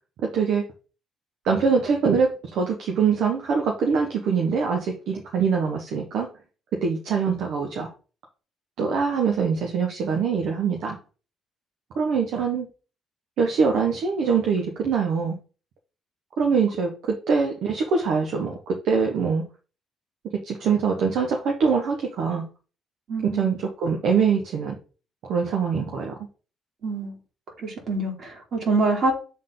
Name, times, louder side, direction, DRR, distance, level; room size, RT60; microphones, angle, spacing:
voice 1, 0.2-0.6 1.4-6.3 6.8-7.9 8.8-11.0 12.0-12.7 13.4-15.4 16.4-19.4 20.4-22.4 23.3-24.7 25.2-26.2, right 5 dB, 70° right, 1 dB, 1.2 m, -23 dB
voice 2, 23.1-23.6 26.8-27.2 27.6-29.1, right 3 dB, 55° right, 0 dB, 3.2 m, -25 dB
7.4 x 3.7 x 3.9 m, 0.35 s
supercardioid pair, 70°, 0 cm